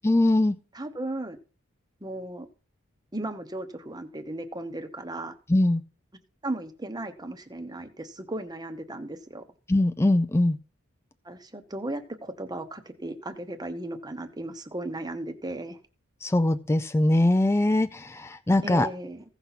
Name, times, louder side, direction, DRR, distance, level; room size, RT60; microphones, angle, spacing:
voice 1, 0.0-0.6 5.5-5.8 9.7-10.6 16.2-18.9, left 1 dB, 10° left, 10 dB, 0.4 m, -22 dB
voice 2, 0.7-1.4 2.0-2.5 3.1-5.3 6.4-9.4 11.2-15.8 18.6-19.2, right 1 dB, 20° right, 8 dB, 0.9 m, -36 dB
16.0 x 5.8 x 4.1 m, 0.37 s
head